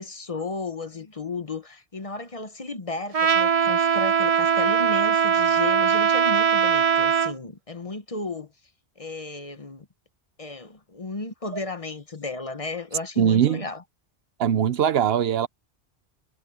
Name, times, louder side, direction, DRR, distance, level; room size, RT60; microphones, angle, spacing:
voice 1, 0.0-8.5 9.0-9.9 10.4-13.8, left 3 dB, 35° left, 1.0 m, -34 dB
Trumpet, 3.1-7.3, right 7 dB, 35° right, 0.8 m, -21 dB
voice 2, 13.2-13.7 14.4-15.5, right 9 dB, 70° right, 0.9 m, -21 dB
omnidirectional pair, 1.1 m